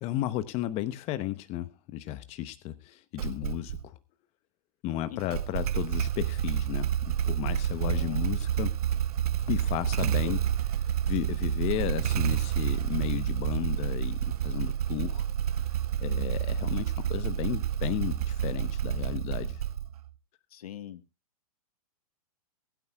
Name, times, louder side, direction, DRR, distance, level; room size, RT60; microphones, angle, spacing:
voice 1, 0.0-3.9 4.8-8.7 9.5-10.4 11.1-15.3 16.0-19.6, left 14 dB, 35° left, 0.9 m, -33 dB
Motorcycle / Engine starting, 3.2-3.8 5.2-20.1, right 10 dB, 75° right, 0.9 m, -29 dB
voice 2, 7.8-8.3 10.0-10.4 20.5-21.0, left 11 dB, 75° left, 1.4 m, -42 dB
23.0 x 9.7 x 2.3 m
hypercardioid pair, 130°, 19 cm